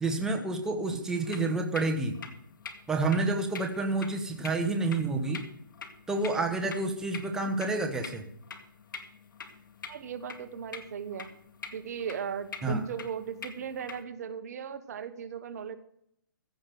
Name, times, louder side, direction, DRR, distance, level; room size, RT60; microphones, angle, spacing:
voice 1, 0.0-2.1 2.9-5.4 6.1-8.2 12.6-12.8, right 3 dB, 5° right, 2 dB, 1.1 m, -29 dB
sound 1, 1.1-14.0, left 5 dB, 65° left, 2.1 m, -46 dB
voice 2, 9.9-11.3 11.7-15.8, right 7 dB, 50° right, 11 dB, 1.2 m, -37 dB
15.5 x 6.1 x 7.6 m, 0.72 s
hypercardioid pair, 155°, 11 cm